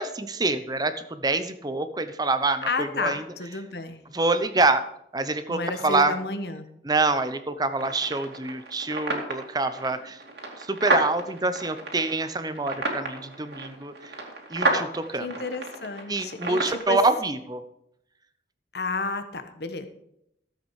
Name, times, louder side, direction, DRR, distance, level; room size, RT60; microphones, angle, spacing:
voice 1, 0.0-3.2 4.1-4.8 5.1-6.2 6.8-10.2 10.6-14.2 14.5-15.3 16.1-17.6, right 3 dB, 20° right, 11 dB, 0.8 m, -26 dB
voice 2, 2.7-4.0 5.5-6.7 15.2-17.0 18.7-19.9, left 3 dB, 65° left, 8 dB, 1.3 m, -31 dB
sound 1, 7.7-16.8, right 2 dB, 70° right, 2.6 m, -31 dB
14.0 x 8.1 x 4.9 m, 0.76 s
head